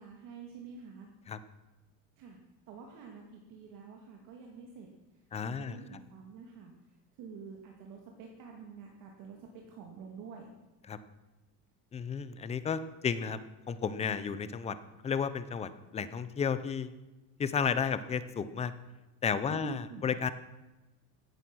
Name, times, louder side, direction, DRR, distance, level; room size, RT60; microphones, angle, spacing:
voice 1, 0.0-1.1 2.2-2.4 2.7-10.5 19.5-20.1, right 5 dB, 50° right, 1 dB, 2.3 m, -48 dB
voice 2, 5.3-5.8 10.9-11.0 11.9-13.4 13.7-14.8 15.0-16.9 17.4-18.7 19.2-20.3, left 6 dB, 15° left, 13 dB, 0.6 m, -32 dB
16.5 x 13.5 x 6.2 m, 1.1 s
cardioid pair, 170°, 42 cm